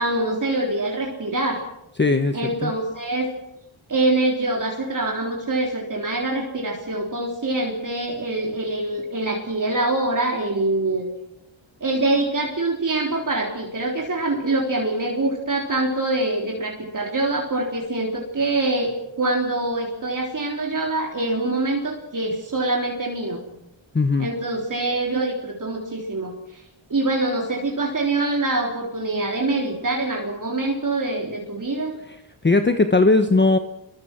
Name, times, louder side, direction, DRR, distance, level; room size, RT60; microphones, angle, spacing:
voice 1, 0.0-1.6 2.3-3.3 3.9-11.1 11.8-23.4 24.2-26.6 26.9-32.0, right 2 dB, 40° right, 0 dB, 3.8 m, -24 dB
voice 2, 2.0-2.7 23.9-24.3 32.1-32.2 32.4-33.6, left 3 dB, 25° left, 7 dB, 1.2 m, -18 dB
26.0 x 23.0 x 6.1 m, 0.86 s
wide cardioid pair, 105°, 48 cm